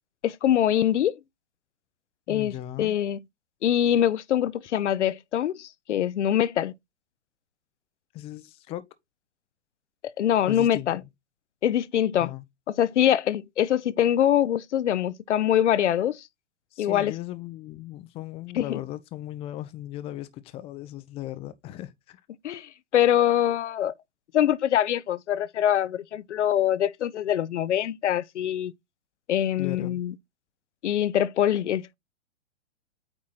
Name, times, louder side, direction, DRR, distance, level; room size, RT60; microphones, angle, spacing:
voice 1, 0.2-1.1 2.3-3.2 3.6-6.7 10.0-11.0 11.6-12.3 12.8-16.2 16.8-17.1 18.6-18.8 22.4-23.9 24.3-28.7 29.3-30.1 30.8-31.9, left 11 dB, 70° left, 0.6 m, -24 dB
voice 2, 2.3-3.0 8.1-8.8 10.4-11.1 12.2-12.4 16.7-22.2 29.6-30.0, left 14 dB, 15° left, 0.5 m, -37 dB
8.8 x 3.0 x 4.0 m
figure-of-eight pair, 115°, 36 cm